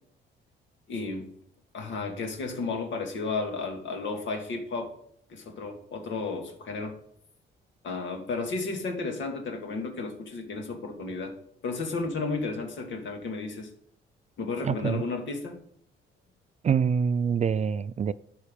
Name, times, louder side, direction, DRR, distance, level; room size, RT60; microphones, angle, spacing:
voice 1, 0.9-1.3 1.7-4.9 5.3-7.0 7.8-11.3 11.6-13.7 14.4-15.6, left 3 dB, 70° left, 2.0 m, -33 dB
voice 2, 14.6-15.0 16.6-18.1, right 7 dB, 35° right, 0.4 m, -25 dB
11.5 x 5.5 x 5.3 m
cardioid pair, 90°, 20 cm